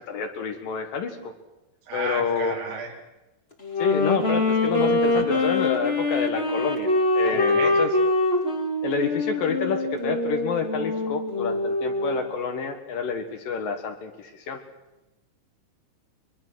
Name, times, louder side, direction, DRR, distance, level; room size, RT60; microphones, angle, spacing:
voice 1, 0.0-1.3 1.9-2.6 3.8-7.9 8.8-14.6, left 5 dB, 60° left, 7 dB, 2.7 m, -28 dB
voice 2, 1.9-2.9 5.2-5.4 7.2-7.8, right 4 dB, 85° right, 0 dB, 5.9 m, -33 dB
Wind instrument woodwind instrument, 3.6-12.3, left 2 dB, 25° left, 1.5 m, -24 dB
23.0 x 23.0 x 6.3 m, 1.0 s
omnidirectional pair, 5.2 m